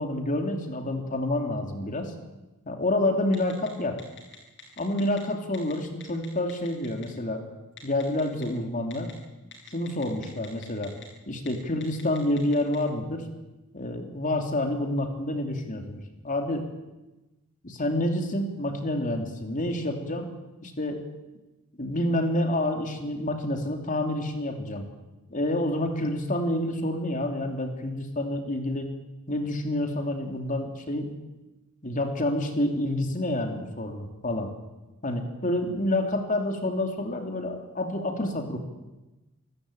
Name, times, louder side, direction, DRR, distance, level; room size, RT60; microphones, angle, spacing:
voice 1, 0.0-2.1 2.6-4.0 4.8-7.4 7.8-9.1 9.7-10.9 11.3-13.2 13.7-16.6 17.6-20.3 20.6-21.0 21.7-24.9 25.3-28.9 29.3-31.1 31.8-34.5 35.0-38.6, left 1 dB, 35° left, 4 dB, 3.2 m, -28 dB
Telephone, 3.3-3.7 4.0-5.2 5.5-5.7 6.0-7.1 7.8-8.4 8.9-9.1 9.5-11.1 11.4-11.5 11.8-12.8, left 9 dB, 55° left, 7.2 m, -45 dB
27.0 x 14.5 x 8.8 m, 1.1 s
head